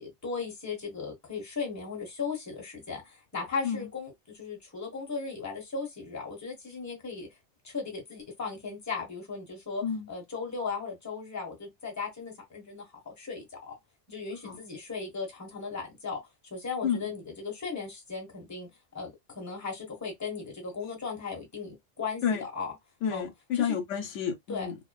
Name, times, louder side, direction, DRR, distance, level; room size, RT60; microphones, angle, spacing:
voice 1, 0.0-7.3 7.6-13.7 14.1-16.2 16.5-18.7 18.9-22.7 23.1-23.2 23.5-23.8 24.5-24.7, left 5 dB, 15° left, 0.9 m, -37 dB
voice 2, 23.0-24.7, left 7 dB, 80° left, 1.0 m, -30 dB
2.5 x 2.1 x 2.3 m
omnidirectional pair, 1.2 m